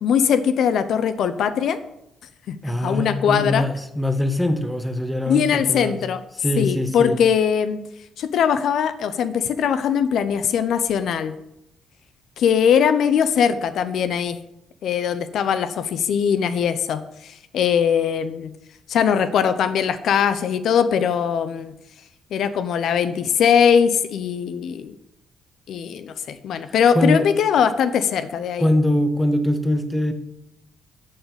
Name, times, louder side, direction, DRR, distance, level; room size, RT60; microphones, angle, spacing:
voice 1, 0.0-1.8 2.5-3.6 5.3-6.2 6.6-7.8 8.2-11.3 12.4-14.4 14.8-18.5 18.9-21.7 22.3-24.9 25.7-28.7, left 7 dB, 70° left, 11 dB, 0.6 m, -21 dB
voice 2, 2.6-6.0 6.4-7.2 26.6-27.3 28.6-30.1, left 1 dB, 5° left, 7 dB, 1.2 m, -23 dB
11.5 x 4.1 x 8.0 m, 0.83 s
cardioid pair, 90°, 0 cm